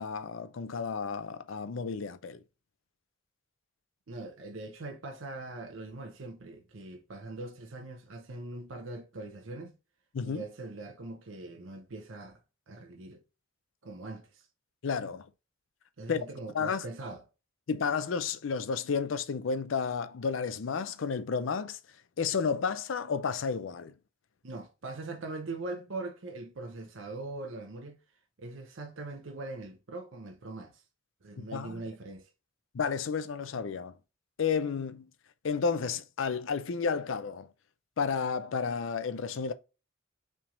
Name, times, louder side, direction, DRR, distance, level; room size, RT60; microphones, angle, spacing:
voice 1, 0.0-2.4 10.1-10.4 14.8-15.3 16.1-16.2 16.5-16.8 17.7-21.8 22.2-23.9 31.4-31.8 32.7-33.9 34.4-35.1 35.4-37.5 38.0-39.5, left 5 dB, 70° left, 0.5 m, -31 dB
voice 2, 4.1-9.8 10.2-12.4 12.7-13.2 13.8-14.5 16.0-17.2 24.4-28.0 28.4-30.8 31.2-32.3, right 2 dB, 80° right, 0.8 m, -41 dB
5.7 x 3.4 x 2.5 m
head